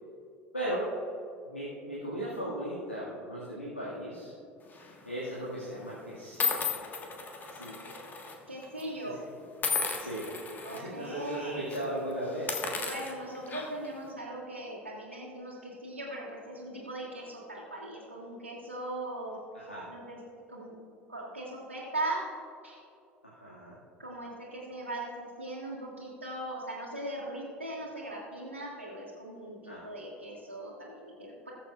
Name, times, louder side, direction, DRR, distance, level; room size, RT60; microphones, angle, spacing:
voice 1, 0.5-0.9 1.4-4.3 5.1-6.7 7.5-7.9 9.0-9.2 9.9-10.3 10.7-12.6 19.5-19.9 23.2-23.8 29.7-29.9, right 1 dB, 90° left, -8 dB, 1.9 m, -37 dB
sound 1, 4.7-5.0 5.8-5.9 6.4-8.3 8.6-8.8 9.6-10.8 11.2-11.4 11.7-11.8 12.3-13.9, left 5 dB, 30° left, 1.5 m, -34 dB
voice 2, 8.5-9.2 10.6-11.7 12.8-19.4 19.9-20.2 20.5-20.7 21.1-22.3 22.6-22.8 24.0-31.5, right 1 dB, 90° right, -9 dB, 1.7 m, -39 dB
20.5 x 7.3 x 2.4 m, 2.6 s
figure-of-eight pair, 70°, 7 cm